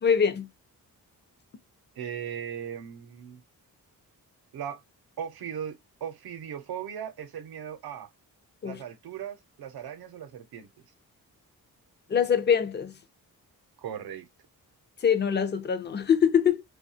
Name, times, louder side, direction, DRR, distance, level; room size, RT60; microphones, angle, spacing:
voice 1, 0.0-0.5 8.6-8.8 12.1-12.9 15.0-16.6, left 7 dB, 30° left, 0.4 m, -23 dB
voice 2, 2.0-3.4 4.5-4.8 5.2-8.1 8.6-10.7 13.8-14.3, right 8 dB, 85° right, 0.7 m, -38 dB
2.7 x 2.2 x 2.6 m
wide cardioid pair, 125°, 37 cm